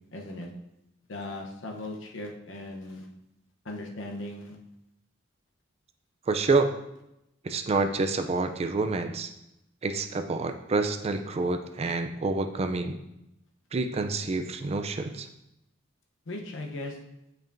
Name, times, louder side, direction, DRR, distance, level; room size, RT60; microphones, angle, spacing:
voice 1, 0.1-0.5 1.1-3.1 3.6-4.6 16.3-17.0, left 2 dB, 75° left, 1 dB, 0.8 m, -38 dB
voice 2, 6.3-6.7 7.4-9.3 9.8-13.0 13.7-15.3, right 3 dB, 35° right, 7 dB, 0.4 m, -28 dB
6.8 x 5.7 x 2.6 m, 0.86 s
head